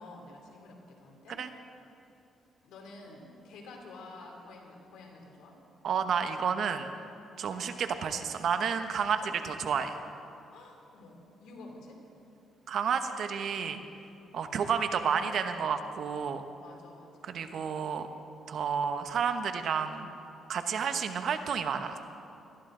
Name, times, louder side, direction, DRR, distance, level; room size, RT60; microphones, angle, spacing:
voice 1, 0.0-1.4 2.6-5.5 7.5-7.8 9.0-9.3 10.5-12.0 14.3-14.7 16.6-17.4 20.7-21.2, left 2 dB, 85° left, 1 dB, 2.9 m, -50 dB
voice 2, 5.8-6.9 7.4-9.2 9.4-10.0 12.7-13.8 14.3-16.4 17.2-18.1 18.5-20.1 20.5-22.0, right 7 dB, 65° right, 8 dB, 1.1 m, -30 dB
21.0 x 14.5 x 3.9 m, 2.7 s
cardioid pair, 90°, 0 cm